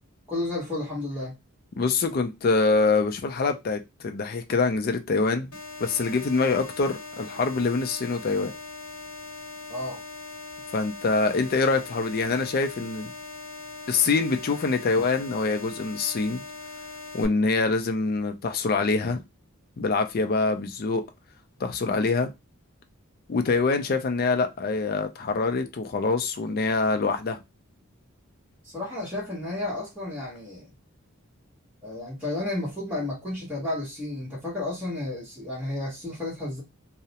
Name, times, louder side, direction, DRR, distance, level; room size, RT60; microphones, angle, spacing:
voice 1, 0.3-1.3 9.7-10.0 28.6-30.7 31.8-36.6, left 2 dB, 5° right, 0.9 m, -32 dB
voice 2, 1.8-5.5 5.8-8.5 10.7-13.1 13.9-16.4 17.1-19.2 19.8-21.0 21.6-22.3 23.3-27.4, left 4 dB, 45° left, 0.4 m, -25 dB
sound 1, 5.5-17.3, left 3 dB, 85° left, 0.7 m, -41 dB
2.3 x 2.0 x 2.7 m
head